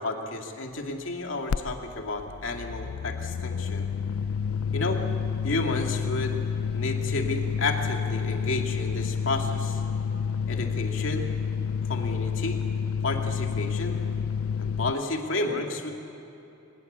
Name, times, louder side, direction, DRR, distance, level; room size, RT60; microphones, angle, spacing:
voice 1, 0.0-3.9 4.7-5.0 5.4-6.4 6.7-9.8 10.5-11.3 11.9-12.6 13.0-14.0 14.6-15.9, left 2 dB, 65° left, 2 dB, 2.4 m, -31 dB
sound 1, 1.5-1.6 1.9-14.9, left 6 dB, 90° left, 0.4 m, -29 dB
25.0 x 20.5 x 8.1 m, 2.9 s
head